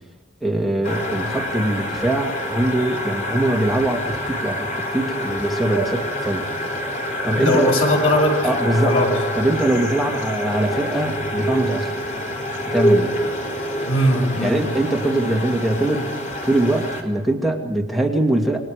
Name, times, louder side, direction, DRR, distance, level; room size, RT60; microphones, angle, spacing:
voice 1, 0.4-6.5 7.2-7.7 8.4-8.9 9.3-11.9 12.7-13.1 14.4-18.6, right 1 dB, ahead, 1 dB, 2.3 m, -22 dB
sound 1, 0.8-17.0, equal, 40° left, 4.0 m, -26 dB
voice 2, 7.4-8.4 8.8-9.2 13.9-14.6, left 1 dB, 85° left, 1 dB, 7.7 m, -19 dB
27.5 x 24.0 x 5.1 m, 1.2 s
head